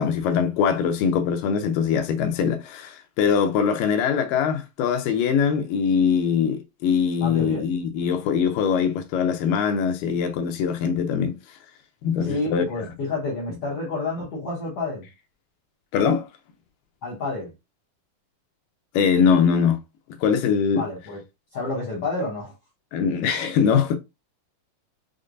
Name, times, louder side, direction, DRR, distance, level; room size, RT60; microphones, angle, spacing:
voice 1, 0.0-11.4 12.0-12.9 15.9-16.3 18.9-19.8 20.2-20.8 22.9-24.0, left 7 dB, 80° left, 2.1 m, -22 dB
voice 2, 7.2-7.6 12.2-15.0 17.0-17.5 20.7-21.2 21.5-22.5, left 3 dB, 65° left, 1.5 m, -29 dB
6.3 x 2.2 x 2.4 m
omnidirectional pair, 4.0 m